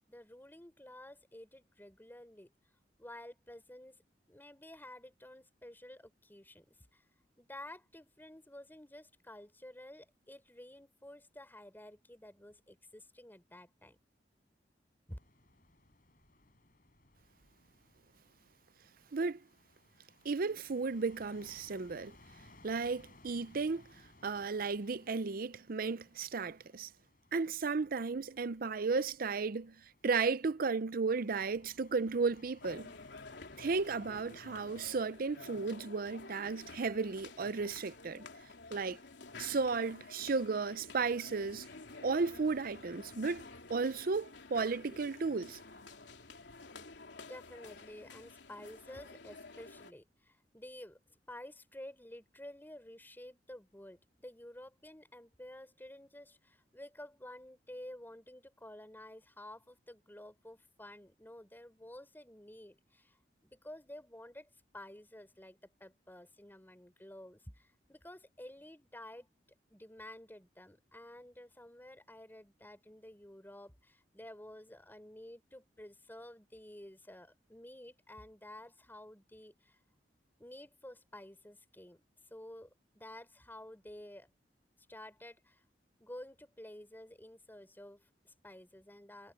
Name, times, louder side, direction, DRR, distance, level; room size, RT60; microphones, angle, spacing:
voice 1, 0.0-2.5 3.0-4.0 4.3-7.0 7.4-14.0 15.1-15.2 47.1-69.3 69.7-79.8 80.4-82.0 82.3-84.3 84.9-85.6 86.0-89.3, left 1 dB, 10° left, 4.4 m, -52 dB
sound 1, 15.1-35.0, left 2 dB, 55° left, 6.0 m, -63 dB
voice 2, 20.2-22.2 22.6-23.8 24.2-26.9 27.3-29.7 30.0-32.9 33.6-38.3 38.7-39.0 39.4-41.6 42.0-43.4 43.7-45.6, right 4 dB, 55° right, 0.6 m, -34 dB
sound 2, 32.6-49.9, left 3 dB, 85° left, 3.1 m, -51 dB
head